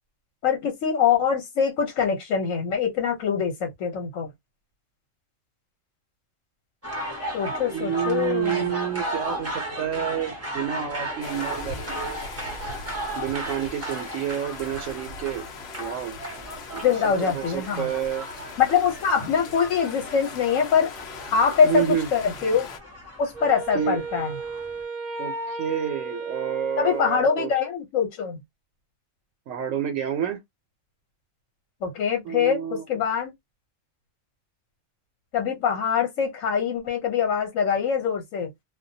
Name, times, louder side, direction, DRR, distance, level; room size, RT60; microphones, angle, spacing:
voice 1, 0.4-4.3 7.3-8.7 16.8-17.9 18.6-20.9 21.3-22.7 23.2-24.3 26.8-28.4 31.8-33.3 35.3-38.5, left 7 dB, 85° left, 1.1 m, -23 dB
sound 1, 6.8-24.8, right 1 dB, 15° right, 0.6 m, -36 dB
voice 2, 7.7-12.2 13.2-15.5 15.8-16.2 16.7-18.2 21.6-22.1 23.7-24.0 25.2-27.5 29.5-30.4 32.2-32.8, right 9 dB, 85° right, 1.0 m, -29 dB
sound 2, 11.2-22.8, left 4 dB, 60° left, 0.8 m, -40 dB
Wind instrument woodwind instrument, 23.3-27.7, right 3 dB, 55° right, 0.8 m, -35 dB
2.3 x 2.2 x 2.6 m
omnidirectional pair, 1.3 m